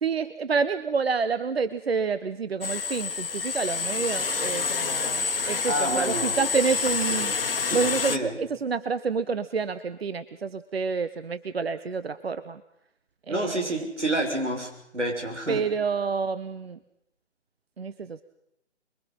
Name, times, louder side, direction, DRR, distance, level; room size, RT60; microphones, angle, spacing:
voice 1, 0.0-7.3 7.7-12.6 13.3-13.8 15.5-16.8 17.8-18.2, right 5 dB, 60° right, 13 dB, 1.0 m, -28 dB
sound 1, 2.6-8.2, left 5 dB, 55° left, 1.4 m, -28 dB
voice 2, 5.7-6.4 7.1-7.2 7.7-8.4 13.3-15.6, right 1 dB, 85° right, 3 dB, 6.5 m, -29 dB
26.0 x 22.5 x 5.6 m, 0.80 s
figure-of-eight pair, 145°, 35 cm